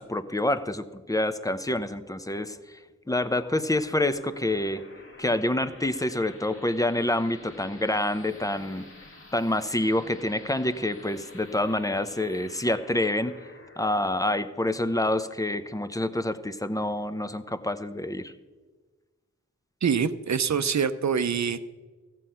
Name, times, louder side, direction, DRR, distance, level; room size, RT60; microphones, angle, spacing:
voice 1, 0.0-2.6 3.1-4.8 5.2-8.9 9.3-13.3 13.8-18.3, left 1 dB, 10° left, 11 dB, 0.8 m, -27 dB
sound 1, 3.2-16.3, left 2 dB, 45° left, 1.8 m, -50 dB
voice 2, 19.8-21.6, right 6 dB, 65° right, 12 dB, 0.7 m, -25 dB
14.5 x 7.7 x 5.7 m, 1.3 s
cardioid pair, 45°, 30 cm